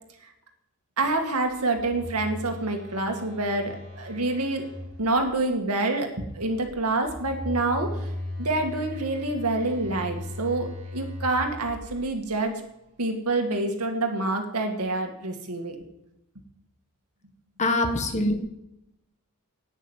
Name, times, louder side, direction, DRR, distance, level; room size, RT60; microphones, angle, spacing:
voice 1, 1.0-4.7 5.0-8.1 8.4-12.6 13.0-15.8, right 2 dB, 90° right, 4 dB, 2.2 m, -27 dB
Telephone, 1.5-5.5 6.6-12.3, left 1 dB, 35° right, 4.6 m, -38 dB
voice 2, 17.6-18.4, left 2 dB, 30° left, 6 dB, 1.6 m, -23 dB
10.0 x 9.1 x 9.1 m, 0.86 s
head